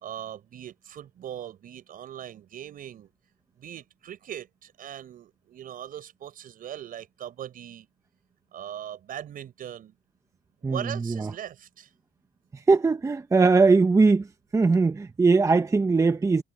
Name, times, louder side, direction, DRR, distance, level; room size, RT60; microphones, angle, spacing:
voice 1, 0.0-3.1 3.6-7.9 8.5-9.9 10.6-11.9, right 10 dB, 55° right, 5.0 m, -40 dB
voice 2, 12.7-14.2 14.5-16.4, right 4 dB, 20° right, 0.8 m, -20 dB
cardioid pair, 110°, 17 cm